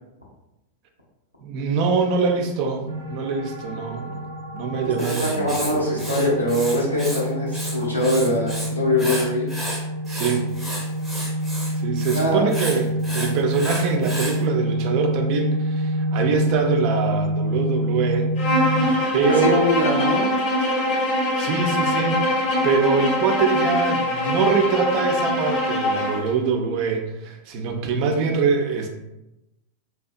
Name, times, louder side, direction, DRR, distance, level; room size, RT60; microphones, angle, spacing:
voice 1, 1.4-4.3 4.5-6.0 10.1-10.5 11.8-18.3 19.1-19.6 21.4-28.9, right 5 dB, 45° right, 3 dB, 0.4 m, -24 dB
sound 1, 2.9-18.9, equal, 85° right, 0.6 m, -27 dB
Writing, 5.0-7.2 7.5-8.7 9.0-14.4, right 1 dB, 5° right, 0.7 m, -32 dB
voice 2, 5.2-9.5 12.1-12.4 19.4-20.2, left 1 dB, 90° left, -5 dB, 0.6 m, -22 dB
Bowed string instrument, 18.4-26.3, left 1 dB, 45° left, 0.6 m, -23 dB
2.6 x 2.2 x 2.5 m, 0.94 s
figure-of-eight pair, 90°, 0 cm